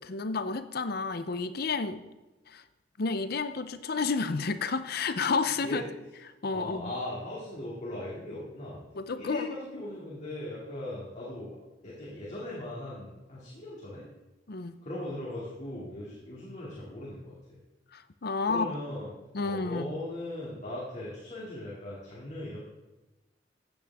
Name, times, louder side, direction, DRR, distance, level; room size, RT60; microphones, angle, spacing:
voice 1, 0.0-2.0 2.5-2.6 3.0-5.8 6.4-6.9 8.9-9.5 14.5-14.8 17.9-18.8 19.3-20.0, left 4 dB, 55° left, 12 dB, 0.7 m, -31 dB
voice 2, 6.5-8.8 9.1-11.5 11.8-14.1 14.8-17.6 18.5-19.1 19.4-22.7, left 1 dB, 40° left, -6 dB, 2.5 m, -39 dB
15.0 x 8.7 x 3.6 m, 1.1 s
head